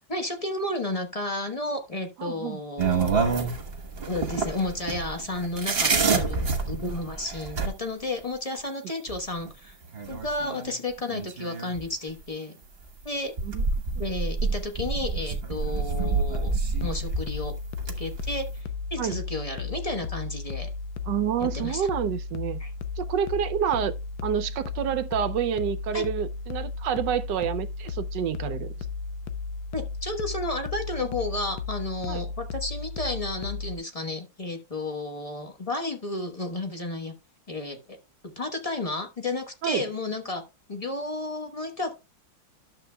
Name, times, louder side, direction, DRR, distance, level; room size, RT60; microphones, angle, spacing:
voice 1, 0.1-3.4 4.0-6.4 6.7-9.8 10.1-12.5 13.0-13.3 14.0-17.6 18.0-20.7 21.5-21.9 22.6-22.7 25.9-26.0 29.7-37.1 37.5-38.0 38.4-40.4 40.7-42.0, left 2 dB, 25° left, 0.7 m, -32 dB
voice 2, 2.2-2.6 13.4-13.6 19.0-19.2 21.1-22.6 23.0-23.9 24.2-28.7 32.1-32.2 39.6-39.9, right 9 dB, 70° right, 1.1 m, -28 dB
sound 1, 2.8-7.7 9.1-9.2 9.5-9.6 9.9-10.8 11.1-11.8 12.9-13.0 13.4-17.5 17.8-18.4, right 4 dB, 35° right, 1.2 m, -28 dB
sound 2, 15.9-33.8, left 4 dB, 75° left, 1.5 m, -34 dB
12.0 x 7.3 x 2.2 m
omnidirectional pair, 2.2 m